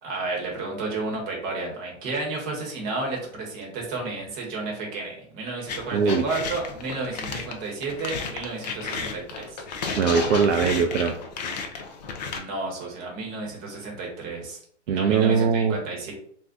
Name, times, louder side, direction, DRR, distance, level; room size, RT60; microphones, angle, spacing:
voice 1, 0.0-9.6 12.2-14.6 14.9-16.1, right 3 dB, 25° right, -1 dB, 0.9 m, -32 dB
sound 1, 5.7-12.4, left 5 dB, 35° left, 0.4 m, -33 dB
voice 2, 5.9-6.2 10.0-11.1 14.9-15.7, right 6 dB, 65° right, 4 dB, 0.5 m, -21 dB
2.6 x 2.1 x 3.6 m, 0.62 s
hypercardioid pair, 130°, 39 cm